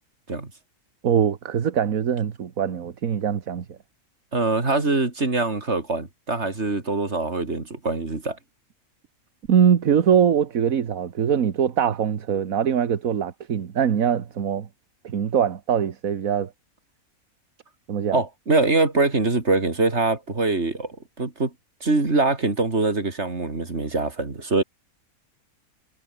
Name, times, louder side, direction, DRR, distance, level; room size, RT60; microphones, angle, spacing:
voice 1, 1.0-3.8 9.5-14.7 15.0-16.5 17.9-18.2, right 8 dB, 70° right, 1.7 m, -22 dB
voice 2, 4.3-8.4 18.1-21.5 21.8-24.6, right 3 dB, 50° right, 3.4 m, -23 dB
omnidirectional pair, 1.5 m